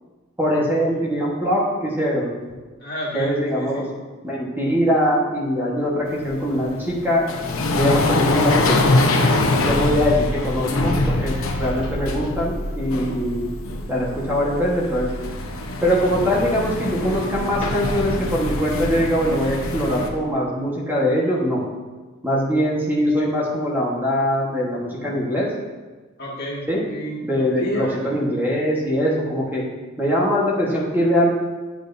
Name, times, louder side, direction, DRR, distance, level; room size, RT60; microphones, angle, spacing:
voice 1, 0.4-2.3 3.1-3.9 4.2-7.4 7.7-8.8 9.6-13.5 13.9-15.1 15.8-21.6 22.2-25.5 26.7-26.8 27.2-29.6 30.0-31.3, equal, 10° right, -4 dB, 1.2 m, -22 dB
voice 2, 2.8-3.9 26.2-27.2 27.6-28.1, equal, 50° left, -5 dB, 1.8 m, -30 dB
sound 1, 6.1-20.1, left 2 dB, 85° left, 0.9 m, -24 dB
8.9 x 7.5 x 2.6 m, 1.3 s
head